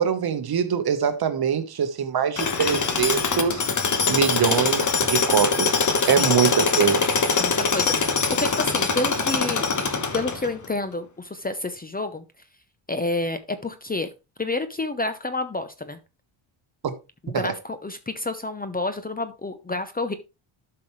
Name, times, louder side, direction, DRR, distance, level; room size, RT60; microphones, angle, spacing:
voice 1, 0.0-3.7 4.1-7.0 16.8-16.9 17.3-17.6, right 8 dB, 50° right, 1.3 m, -23 dB
Tools, 2.4-10.7, left 4 dB, 35° left, 1.4 m, -23 dB
voice 2, 7.4-9.7 10.1-12.2 12.9-14.1 14.4-16.0 17.2-20.1, left 2 dB, 20° left, 0.7 m, -29 dB
11.5 x 5.9 x 3.2 m
cardioid pair, 115°, 50 cm